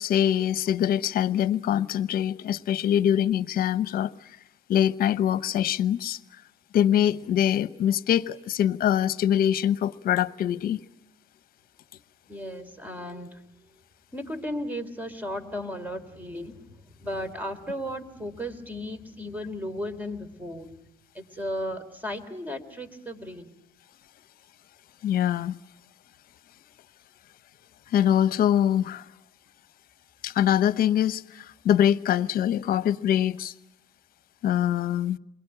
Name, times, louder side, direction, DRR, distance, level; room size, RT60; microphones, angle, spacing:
voice 1, 0.0-4.1 4.7-6.2 6.7-10.8 25.0-25.6 27.9-29.0 30.2-33.5 34.4-35.2, left 10 dB, 60° left, 0.9 m, -24 dB
voice 2, 12.3-13.4 14.1-20.8 21.1-23.5, equal, 10° right, 3.5 m, -35 dB
28.0 x 22.0 x 8.9 m
cardioid pair, 110°, 17 cm